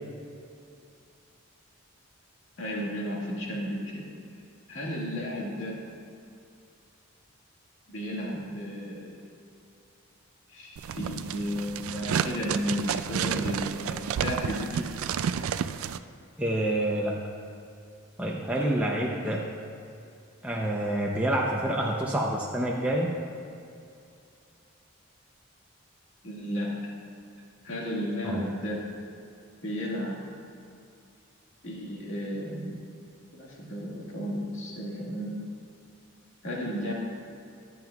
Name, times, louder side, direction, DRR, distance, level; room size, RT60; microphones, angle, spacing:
voice 1, 2.6-4.0 4.7-5.9 7.9-9.2 10.5-15.0 26.2-26.8 27.6-28.9 29.6-30.3 31.6-32.8 33.3-35.4 36.4-36.9, equal, 65° left, -4 dB, 1.9 m, -33 dB
sound 1, 10.8-16.0, right 8 dB, 80° right, 0.3 m, -31 dB
voice 2, 16.4-17.2 18.2-19.4 20.4-23.1 28.2-28.4, right 1 dB, 5° right, -3 dB, 0.5 m, -27 dB
14.5 x 9.3 x 2.3 m, 2.5 s
head